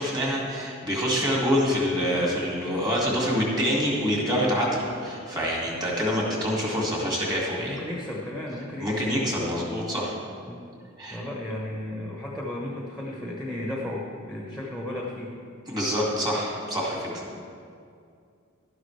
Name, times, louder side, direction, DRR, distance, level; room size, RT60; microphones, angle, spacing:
voice 1, 0.0-7.8 8.8-10.1 11.0-11.2 15.7-17.2, equal, 20° right, -3 dB, 2.2 m, -26 dB
voice 2, 7.5-9.1 10.5-10.6 11.1-15.4 17.2-17.4, left 1 dB, 5° right, -3 dB, 1.1 m, -34 dB
12.0 x 11.0 x 3.3 m, 2.3 s
head